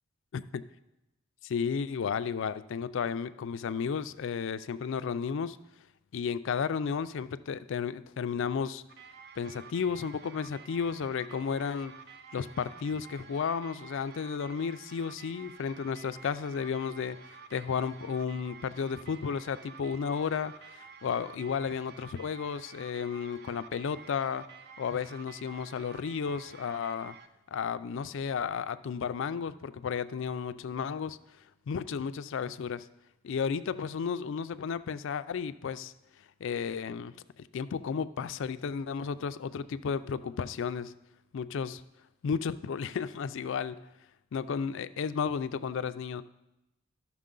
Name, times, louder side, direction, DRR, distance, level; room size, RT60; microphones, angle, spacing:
voice 1, 1.4-5.6 6.1-8.8 9.4-12.0 12.3-17.2 17.5-24.5 24.8-27.2 27.5-31.2 31.7-32.8 33.2-35.9 36.4-37.1 37.5-40.9 41.3-41.8 42.2-43.8 44.3-46.2, left 6 dB, 65° left, 13 dB, 0.4 m, -33 dB
sound 1, 8.9-27.3, right 6 dB, 55° right, 0.5 m, -51 dB
13.5 x 6.1 x 3.8 m, 0.93 s
head